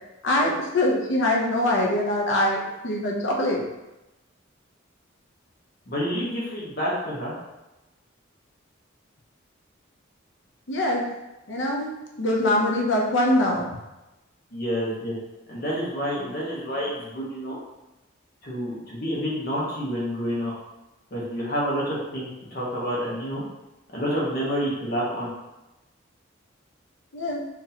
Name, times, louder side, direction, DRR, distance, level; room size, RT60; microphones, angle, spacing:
voice 1, 0.2-3.6 10.7-11.1 11.5-13.7 27.1-27.4, left 1 dB, 70° left, -2 dB, 0.7 m, -23 dB
voice 2, 5.9-7.3 14.5-15.1 15.5-17.6 18.4-20.5 21.1-23.4 23.9-25.3, equal, 50° left, -5 dB, 1.2 m, -28 dB
3.9 x 2.9 x 2.8 m, 1.0 s
head